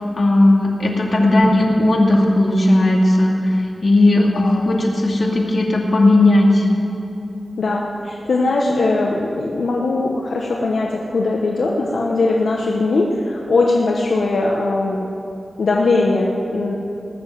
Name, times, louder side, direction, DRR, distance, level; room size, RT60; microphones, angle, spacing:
voice 1, 0.2-6.7, left 1 dB, 55° left, -1 dB, 2.4 m, -15 dB
voice 2, 4.2-4.6 7.6-15.1 15.6-16.7, left 3 dB, 80° left, -1 dB, 1.1 m, -20 dB
19.0 x 7.1 x 7.8 m, 2.8 s
wide cardioid pair, 85°, 0 cm